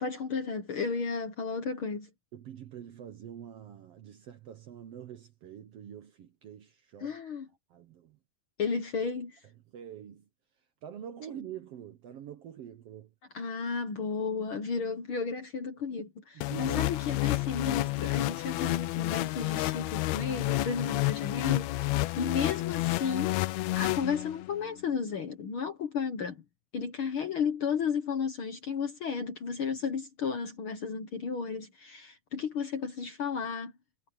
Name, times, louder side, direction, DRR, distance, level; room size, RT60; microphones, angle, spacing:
voice 1, 0.0-2.1 7.0-7.5 8.6-9.4 13.3-16.1 16.6-21.7 22.2-23.4 23.7-26.4 26.7-33.7, left 5 dB, 55° left, 1.6 m, -33 dB
voice 2, 2.3-7.2 7.7-8.2 9.7-10.3 10.8-13.1 16.4-16.8, right 9 dB, 65° right, 1.7 m, -45 dB
sound 1, 16.4-24.6, left 19 dB, 80° left, 1.5 m, -30 dB
omnidirectional pair, 3.7 m